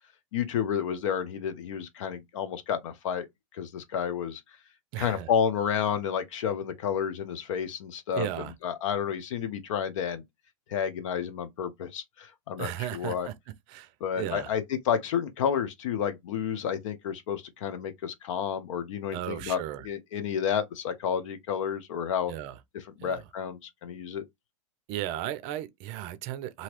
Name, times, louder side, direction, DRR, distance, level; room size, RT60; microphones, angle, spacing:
voice 1, 0.3-3.3 3.5-4.4 5.0-8.3 8.6-10.2 10.7-13.3 14.0-22.3 22.7-24.2, left 8 dB, 60° left, 0.7 m, -30 dB
voice 2, 4.9-5.3 8.1-8.5 12.6-13.3 13.7-13.9 14.2-14.5 19.1-19.9 22.3-22.6 23.0-23.2 24.9-26.6, right 13 dB, 40° right, 0.5 m, -35 dB
2.8 x 2.7 x 3.0 m
hypercardioid pair, 110°, 18 cm